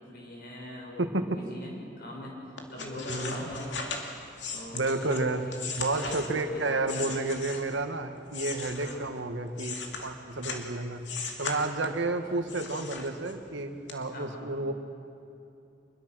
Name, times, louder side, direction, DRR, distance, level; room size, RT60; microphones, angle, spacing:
voice 1, 0.1-2.3 2.7-3.6 4.5-5.7 6.2-7.3 8.7-9.0 12.3-12.4 14.1-14.4, left 1 dB, 55° left, -1 dB, 6.3 m, -42 dB
sound 1, 2.6-7.8 8.3-10.7 11.0-12.1 12.5-13.5 13.9-14.0, left 4 dB, 75° left, 2.4 m, -38 dB
voice 2, 3.0-3.5 4.7-5.4 5.8-9.8 10.0-11.0 11.4-14.7, right 2 dB, 90° right, 7 dB, 1.5 m, -31 dB
25.5 x 21.5 x 6.3 m, 2.7 s
head